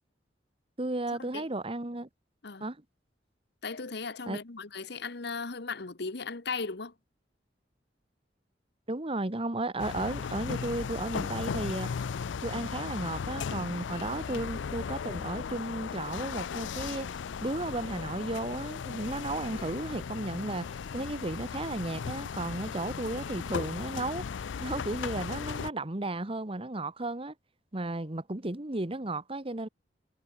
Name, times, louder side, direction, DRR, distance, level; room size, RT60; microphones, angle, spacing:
voice 1, 0.8-2.1 2.6-2.8 4.3-4.4 8.9-11.9 12.4-17.1 17.4-27.3 27.7-29.7, right 2 dB, 30° right, 1.4 m, -34 dB
voice 2, 3.6-6.9, left 4 dB, 65° left, 1.2 m, -37 dB
sound 1, 9.8-25.7, left 6 dB, 90° left, 0.4 m, -36 dB
head